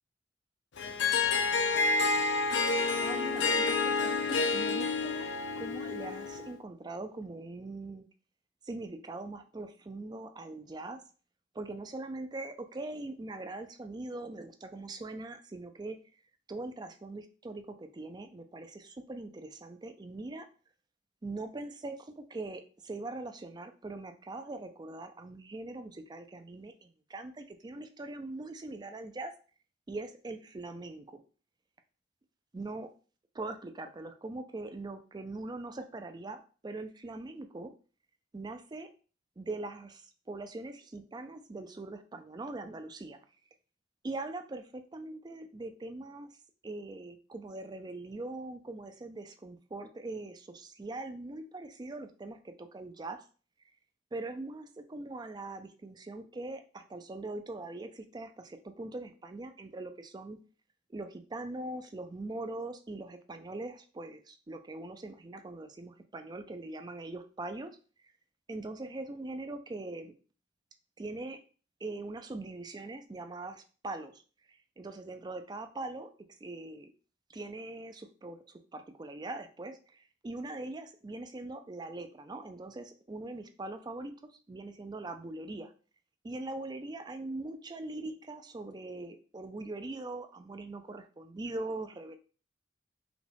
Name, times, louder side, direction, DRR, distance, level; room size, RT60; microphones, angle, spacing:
Harp, 0.8-6.5, left 4 dB, 70° left, 0.5 m, -29 dB
voice 1, 3.0-5.3 5.6-8.0 8.6-11.0 11.5-16.0 16.5-20.5 21.2-29.3 29.9-31.2 32.5-32.9 33.3-37.7 38.3-38.9 39.4-43.2 44.0-46.4 46.6-53.2 54.1-60.4 60.9-67.7 68.5-70.1 71.0-71.4 71.8-74.2 74.5-76.1 76.4-76.9 77.3-84.1 84.5-85.7 86.2-92.2, right 2 dB, 20° right, 8 dB, 0.4 m, -42 dB
4.9 x 2.3 x 3.4 m, 0.38 s
head